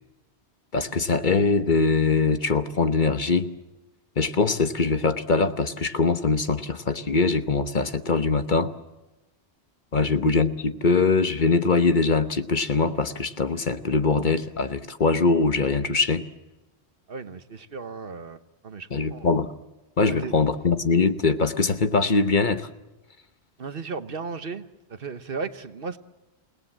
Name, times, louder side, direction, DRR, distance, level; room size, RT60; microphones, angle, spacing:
voice 1, 0.7-3.5 4.2-8.7 9.9-16.2 18.9-19.5 20.0-22.7, left 4 dB, 45° left, 10 dB, 1.1 m, -22 dB
voice 2, 17.1-19.3 20.1-20.4 23.6-26.0, right 4 dB, 55° right, 11 dB, 1.2 m, -36 dB
28.5 x 18.0 x 7.3 m, 1.1 s
omnidirectional pair, 1.1 m